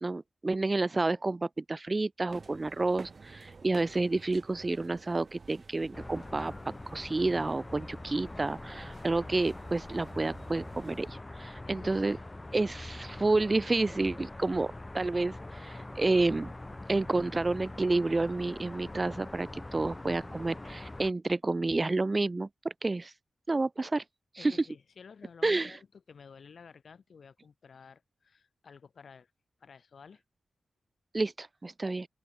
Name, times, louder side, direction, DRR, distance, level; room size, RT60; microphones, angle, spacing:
voice 1, 0.0-6.5 6.9-12.2 12.5-16.5 16.9-23.1 23.5-24.0 24.3-24.6 25.4-25.7 31.1-32.1, right 2 dB, 30° right, 0.4 m, -30 dB
sound 1, 2.3-11.1, right 4 dB, 50° right, 5.5 m, -51 dB
sound 2, 5.9-21.1, left 2 dB, 20° left, 6.3 m, -44 dB
voice 2, 11.7-12.1 24.4-29.3 29.6-30.2, left 6 dB, 70° left, 3.7 m, -53 dB
open air
wide cardioid pair, 90°, 0 cm